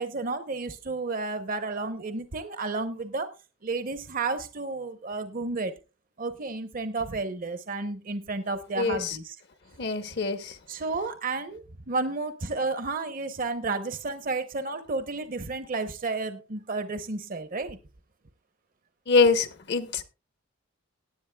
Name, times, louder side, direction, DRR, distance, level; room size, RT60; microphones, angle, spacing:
voice 1, 0.0-3.3 3.6-5.7 6.2-9.4 10.7-17.8, right 3 dB, 40° right, 0.8 m, -32 dB
voice 2, 8.8-9.2 9.8-10.6 19.1-20.0, left 4 dB, 55° left, 0.9 m, -24 dB
18.5 x 10.5 x 2.2 m
head